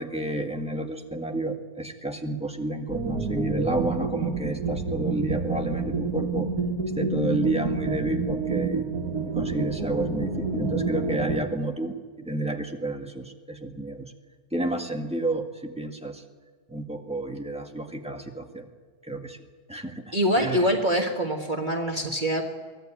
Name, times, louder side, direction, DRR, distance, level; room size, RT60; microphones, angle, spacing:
voice 1, 0.0-6.5 7.0-8.8 9.3-14.1 14.5-16.2 16.7-18.7 19.0-19.4 19.7-20.7, right 1 dB, 5° right, 3 dB, 1.7 m, -30 dB
sound 1, 2.9-11.4, right 4 dB, 70° right, 2.2 m, -29 dB
voice 2, 20.1-22.4, equal, 30° right, 1 dB, 1.7 m, -24 dB
23.5 x 16.0 x 9.0 m, 1.5 s
omnidirectional pair, 1.7 m